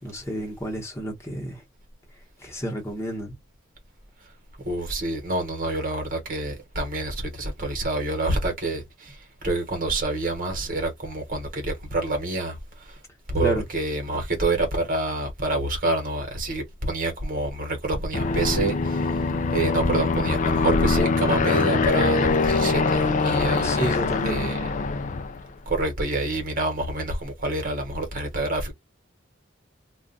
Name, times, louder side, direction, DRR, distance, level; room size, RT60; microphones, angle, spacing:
voice 1, 0.0-1.6 2.4-3.4 13.4-13.6 23.6-24.4, equal, 15° left, 1.1 m, -30 dB
voice 2, 4.6-13.0 13.3-19.2 19.5-24.0 24.2-24.6 25.7-28.7, right 2 dB, 45° right, 1.2 m, -27 dB
Aircraft, 18.1-25.5, left 4 dB, 40° left, 0.4 m, -23 dB
2.4 x 2.4 x 3.8 m
head